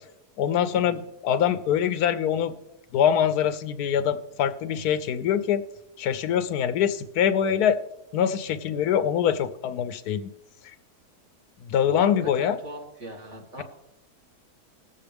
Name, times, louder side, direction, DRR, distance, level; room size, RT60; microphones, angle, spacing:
voice 1, 0.4-2.5 2.9-5.6 6.0-7.8 8.1-10.3 11.7-12.6, left 9 dB, 80° left, 11 dB, 1.1 m, -24 dB
voice 2, 11.9-13.6, right 2 dB, 45° right, -1 dB, 2.5 m, -40 dB
19.0 x 7.5 x 3.4 m, 0.88 s
omnidirectional pair, 1.7 m